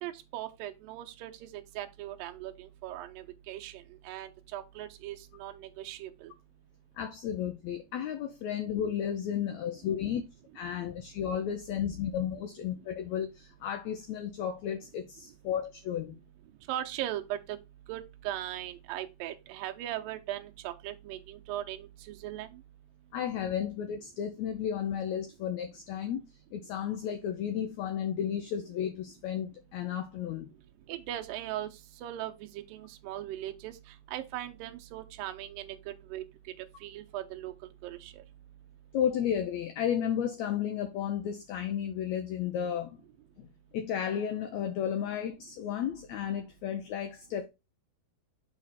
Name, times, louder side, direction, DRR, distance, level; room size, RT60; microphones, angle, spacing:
voice 1, 0.0-6.3 16.7-17.6 17.9-22.6 30.9-31.7 32.0-33.8 34.1-36.2 36.6-37.5 37.8-38.2, right 13 dB, 85° right, 2.5 m, -39 dB
voice 2, 7.0-10.2 10.5-16.2 23.1-26.3 26.5-30.5 38.9-43.0 43.4-43.5 43.7-47.5, left 9 dB, 75° left, 1.7 m, -33 dB
5.9 x 4.9 x 4.1 m
omnidirectional pair, 4.0 m